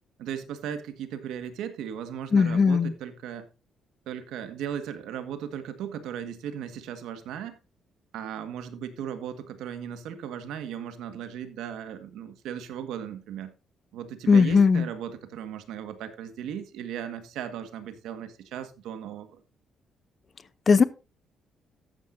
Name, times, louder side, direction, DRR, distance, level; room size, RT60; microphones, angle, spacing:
voice 1, 0.2-3.5 4.1-7.6 8.1-13.5 13.9-19.4, right 9 dB, 90° right, 1.6 m, -37 dB
voice 2, 2.3-2.9 14.3-14.9 20.7-20.8, left 5 dB, 40° left, 0.7 m, -18 dB
14.0 x 9.2 x 2.6 m
cardioid pair, 90°, 0 cm